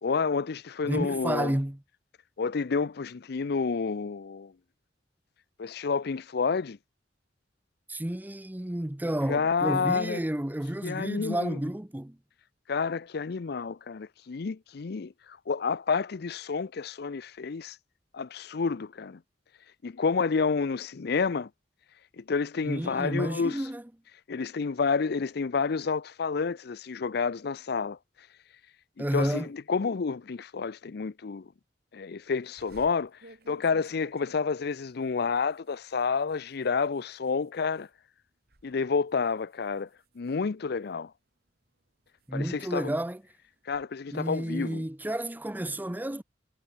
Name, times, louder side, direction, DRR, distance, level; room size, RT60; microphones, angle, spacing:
voice 1, 0.0-1.6 2.4-4.5 5.6-6.8 9.3-10.2 10.8-11.6 12.7-17.8 18.1-19.2 19.8-21.5 22.2-23.6 24.3-28.0 29.0-31.5 31.9-33.2 33.5-37.9 38.6-39.9 40.2-41.1 42.3-42.9 43.7-44.8, left 5 dB, 60° left, 0.5 m, -29 dB
voice 2, 0.9-1.8 7.9-12.2 22.7-23.8 29.0-29.5 42.3-43.2 44.1-46.2, right 1 dB, 10° right, 0.7 m, -31 dB
sound 1, 32.6-37.9 38.3-38.7 39.1-41.1 41.7-43.9, right 2 dB, 60° right, 3.8 m, -58 dB
head